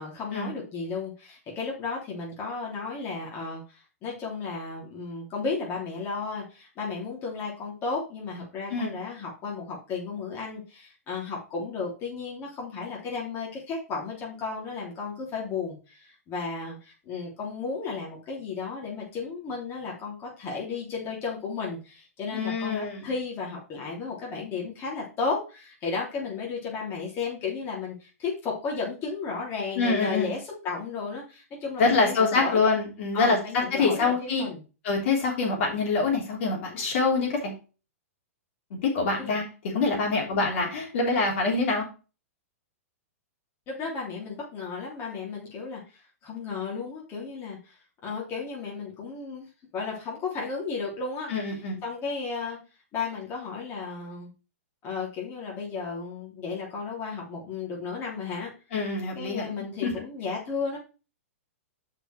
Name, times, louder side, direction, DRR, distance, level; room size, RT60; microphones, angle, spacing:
voice 1, 0.0-32.6 33.1-34.6 39.2-39.4 43.7-47.8 48.0-51.5 51.8-52.6 52.9-54.3 54.8-58.5 59.1-60.8, left 4 dB, 30° left, -3 dB, 3.4 m, -34 dB
voice 2, 22.3-23.1 29.8-30.3 31.8-34.4 34.8-37.6 38.8-39.4 39.7-41.8 51.3-51.8 58.7-59.5 59.8-59.9, left 4 dB, 55° left, -1 dB, 3.5 m, -25 dB
7.1 x 5.6 x 4.6 m, 0.33 s
hypercardioid pair, 120°, 8 cm